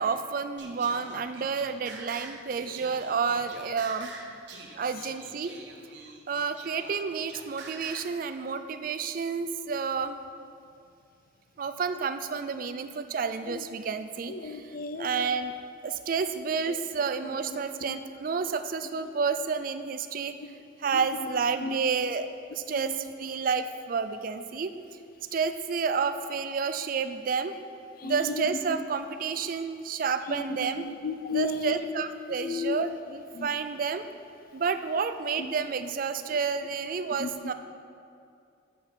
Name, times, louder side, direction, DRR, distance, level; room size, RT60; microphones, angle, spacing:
voice 1, 0.0-4.1 4.8-5.5 6.3-10.2 11.6-14.6 15.0-15.5 15.8-20.4 20.8-24.7 25.3-27.5 28.0-30.9 31.3-34.0 34.5-37.5, right 5 dB, 45° right, 0.3 m, -30 dB
Singing, 0.6-8.2, right 3 dB, 65° right, 0.9 m, -46 dB
voice 2, 14.3-15.3 16.7-16.8 17.9-18.0 20.8-20.9 21.6-21.7 22.7-23.0 28.0-28.5 30.3-31.8 32.4-32.8 33.3-33.5 37.2-37.3, left 3 dB, 50° left, 0.5 m, -34 dB
7.5 x 5.5 x 6.2 m
head